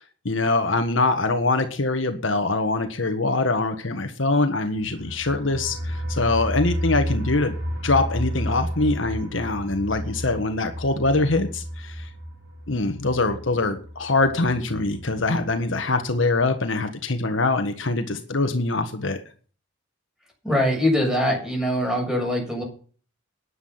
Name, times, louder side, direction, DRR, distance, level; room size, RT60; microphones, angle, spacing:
voice 1, 0.2-7.5 7.8-12.1 12.7-19.2, left 2 dB, 70° left, 7 dB, 1.6 m, -23 dB
sound 1, 4.8-15.5 15.8-15.9 16.2-16.3, equal, 85° right, 5.1 m, -32 dB
voice 2, 20.4-22.6, left 1 dB, 5° right, 0 dB, 7.1 m, -22 dB
14.0 x 10.0 x 5.9 m, 0.41 s
head